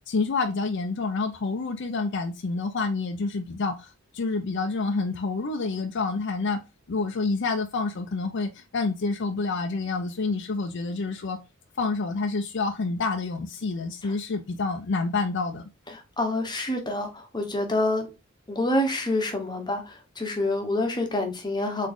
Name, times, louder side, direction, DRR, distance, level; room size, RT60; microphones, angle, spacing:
voice 1, 0.1-6.6 6.9-11.4 11.8-15.6, left 3 dB, 60° left, 0.5 m, -28 dB
voice 2, 15.9-18.1 18.5-21.9, left 1 dB, 20° left, 1.0 m, -27 dB
3.9 x 3.6 x 3.6 m
head